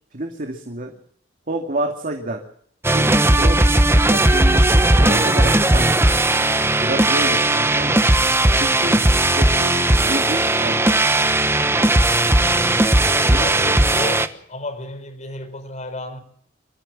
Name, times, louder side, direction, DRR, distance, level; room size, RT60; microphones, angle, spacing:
voice 1, 0.1-0.9 1.5-2.4 2.9-3.6 3.9-5.9 6.8-8.0 8.5-9.0 9.4-9.8 10.1-10.8 13.3-13.5, right 1 dB, 45° right, 2.5 m, -28 dB
sound 1, 2.8-14.3, right 1 dB, 15° right, 1.0 m, -17 dB
voice 2, 13.0-16.2, left 1 dB, 40° left, 4.7 m, -32 dB
25.0 x 14.5 x 7.5 m
head